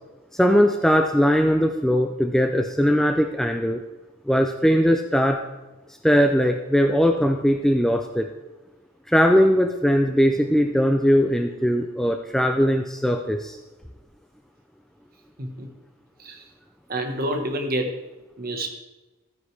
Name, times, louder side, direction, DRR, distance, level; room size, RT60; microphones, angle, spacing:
voice 1, 0.3-3.8 4.3-5.4 6.0-8.3 9.1-13.6, equal, ahead, 4 dB, 0.4 m, -20 dB
voice 2, 15.4-15.7 16.2-16.4 16.9-17.9 18.4-18.8, right 1 dB, 45° right, 4 dB, 1.4 m, -28 dB
14.5 x 9.4 x 3.4 m, 1.1 s
head